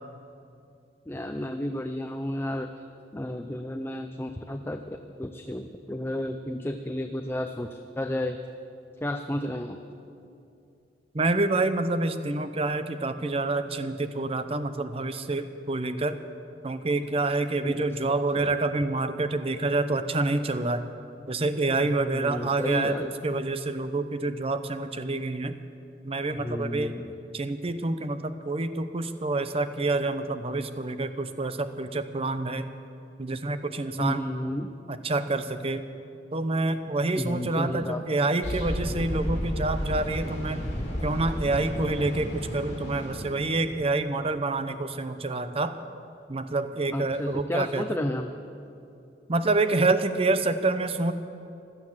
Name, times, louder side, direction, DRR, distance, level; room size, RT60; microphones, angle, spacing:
voice 1, 1.1-2.7 3.1-8.4 9.0-9.8 17.6-18.5 22.0-23.1 26.3-27.1 34.0-34.7 37.2-38.3 46.9-48.3, left 1 dB, 15° left, 6 dB, 0.5 m, -32 dB
voice 2, 11.1-16.2 16.6-20.9 21.3-25.6 26.0-27.0 27.3-32.6 33.2-34.2 34.9-35.8 36.3-40.7 41.0-45.7 46.3-47.8 49.3-51.1, right 2 dB, 35° right, 11 dB, 0.7 m, -27 dB
sound 1, 38.4-43.8, equal, 40° left, 3.8 m, -32 dB
15.5 x 12.0 x 7.4 m, 2.6 s
head